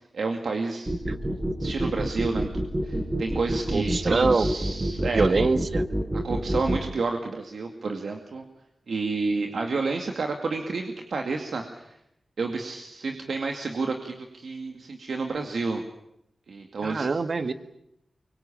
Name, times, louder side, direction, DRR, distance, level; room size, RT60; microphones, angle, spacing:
voice 1, 0.1-0.9 1.6-2.5 2.8-5.5 6.2-8.4 8.9-12.0 12.4-15.8 16.5-17.1, right 4 dB, 80° right, 4 dB, 2.3 m, -30 dB
sound 1, 0.9-6.8, right 1 dB, 25° right, 5.0 m, -27 dB
voice 2, 3.7-4.5 5.1-5.8 16.8-17.5, right 4 dB, 60° right, 11 dB, 1.5 m, -24 dB
24.5 x 23.5 x 8.7 m, 0.81 s
wide cardioid pair, 70°, 0 cm